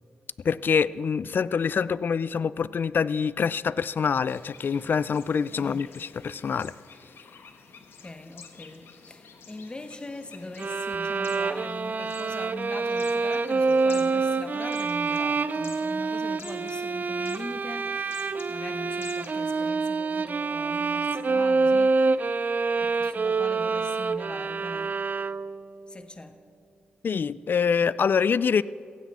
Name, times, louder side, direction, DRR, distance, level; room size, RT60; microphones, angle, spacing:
voice 1, 0.4-6.7 27.0-28.6, left 6 dB, 60° left, 0.4 m, -25 dB
sound 1, 4.2-19.7, left 5 dB, 80° left, 1.3 m, -50 dB
voice 2, 5.5-5.9 8.0-25.0 25.9-26.4, left 2 dB, 25° left, 1.0 m, -41 dB
sound 2, 10.6-25.7, right 4 dB, 50° right, 0.5 m, -26 dB
16.5 x 15.5 x 4.2 m
cardioid pair, 60°, 4 cm